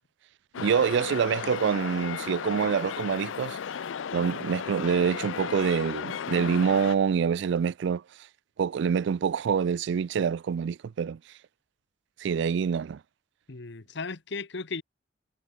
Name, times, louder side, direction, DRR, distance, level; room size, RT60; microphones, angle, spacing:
sound 1, 0.5-7.0, left 7 dB, 80° left, 0.5 m, -35 dB
voice 1, 0.6-3.6 4.1-8.0 8.6-11.2 12.2-13.0, right 6 dB, 65° right, 0.3 m, -26 dB
voice 2, 13.5-14.8, left 4 dB, 65° left, 1.2 m, -36 dB
head